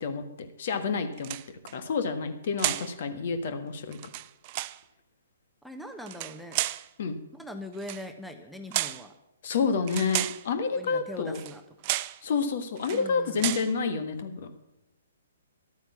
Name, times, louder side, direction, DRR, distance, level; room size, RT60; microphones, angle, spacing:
voice 1, 0.0-1.4 1.7-4.0 7.0-7.2 9.4-11.4 12.2-14.5, left 5 dB, 50° left, 8 dB, 1.5 m, -29 dB
sound 1, 1.2-1.7 2.6-2.9 3.9-4.8 6.0-6.9 7.8-8.0 8.7-9.1 9.9-10.4 11.3-11.6 11.8-12.2 12.8-13.0 13.4-13.7, right 17 dB, 35° right, 0.4 m, -32 dB
voice 2, 5.6-6.6 7.3-9.1 10.7-11.9 12.9-13.6, left 1 dB, ahead, 5 dB, 0.9 m, -42 dB
12.5 x 9.1 x 7.0 m, 0.93 s
figure-of-eight pair, 125°, 0 cm